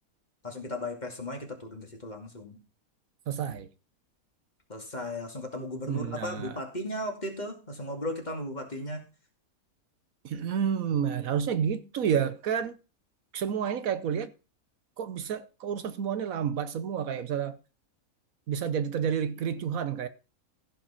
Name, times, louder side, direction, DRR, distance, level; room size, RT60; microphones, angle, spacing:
voice 1, 0.4-2.6 4.7-9.0, left 1 dB, 30° left, 2.4 m, -36 dB
voice 2, 3.3-3.7 5.9-6.6 10.2-12.8 13.3-14.3 15.0-17.6 18.5-20.1, right 8 dB, 70° right, 1.2 m, -30 dB
15.0 x 5.4 x 5.7 m
omnidirectional pair, 1.5 m